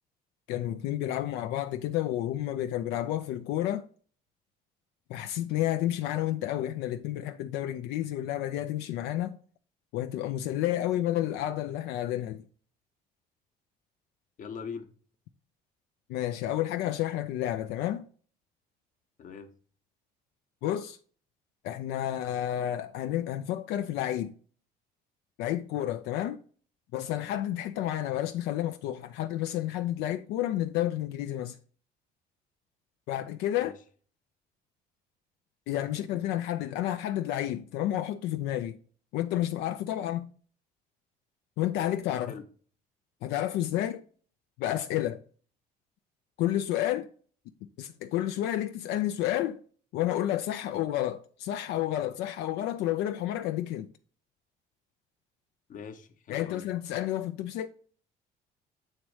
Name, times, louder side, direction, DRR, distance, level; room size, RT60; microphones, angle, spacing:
voice 1, 0.5-3.9 5.1-9.4 9.9-12.4 16.1-18.1 20.6-21.0 21.6-24.3 25.4-26.4 26.9-31.6 33.1-33.8 35.7-38.8 39.1-40.3 41.6-42.3 43.2-44.0 44.6-45.2 46.4-47.1 47.8-49.6 49.9-53.9 56.3-57.7, left 12 dB, 85° left, 0.4 m, -30 dB
voice 2, 14.4-14.9 19.2-19.5 33.5-33.7 42.3-42.4 55.7-56.6, left 6 dB, 50° left, 0.9 m, -42 dB
7.3 x 3.1 x 4.8 m
cardioid pair, 110°, 17 cm